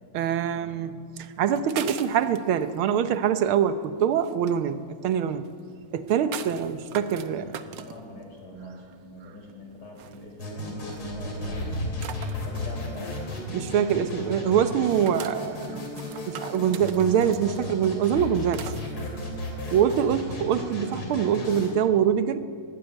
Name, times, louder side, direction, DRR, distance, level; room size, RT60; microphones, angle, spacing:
voice 1, 0.1-5.4 5.9-7.5 13.5-15.8 16.3-18.6 19.7-22.4, right 8 dB, 90° right, 11 dB, 1.8 m, -24 dB
sound 1, 1.2-20.4, right 9 dB, 70° right, 1.5 m, -43 dB
sound 2, 5.7-12.8, left 2 dB, 70° left, 8.8 m, -38 dB
voice 2, 6.5-11.8 12.4-13.1, left 1 dB, 50° left, 2 dB, 4.5 m, -44 dB
sound 3, 10.4-21.7, left 1 dB, 90° left, 4.2 m, -35 dB
20.0 x 15.0 x 9.1 m, 2.1 s
omnidirectional pair, 2.2 m